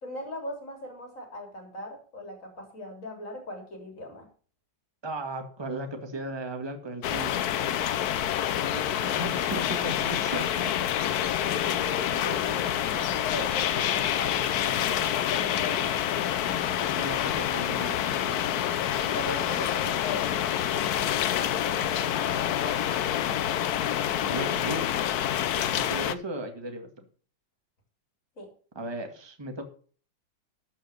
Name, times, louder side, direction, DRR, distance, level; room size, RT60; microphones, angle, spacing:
voice 1, 0.0-4.3 11.6-16.0 19.0-23.0 28.4-28.5, left 2 dB, 40° left, 2 dB, 3.7 m, -39 dB
voice 2, 5.0-7.9 8.7-10.7 12.6-12.7 16.8-18.5 24.2-24.9 25.6-27.0 28.7-29.6, right 2 dB, 15° right, 5 dB, 1.6 m, -36 dB
sound 1, 7.0-26.1, left 10 dB, 65° left, 1.1 m, -27 dB
13.0 x 5.7 x 6.5 m, 0.42 s
omnidirectional pair, 2.1 m